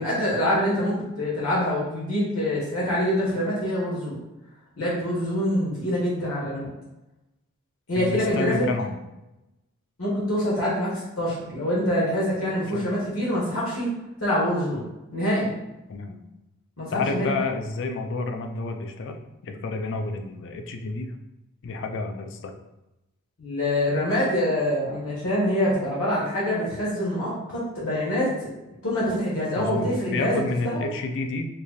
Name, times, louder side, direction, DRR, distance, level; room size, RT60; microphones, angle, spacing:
voice 1, 0.0-4.2 4.8-6.7 7.9-8.6 10.0-13.9 14.2-15.5 16.8-17.3 23.4-28.5 28.8-30.8, left 1 dB, 85° left, -7 dB, 1.4 m, -25 dB
voice 2, 8.0-9.0 12.7-12.8 15.9-16.2 16.9-21.1 21.6-22.5 29.5-31.5, left 3 dB, 60° left, 6 dB, 0.4 m, -30 dB
4.7 x 2.7 x 2.4 m, 0.96 s
head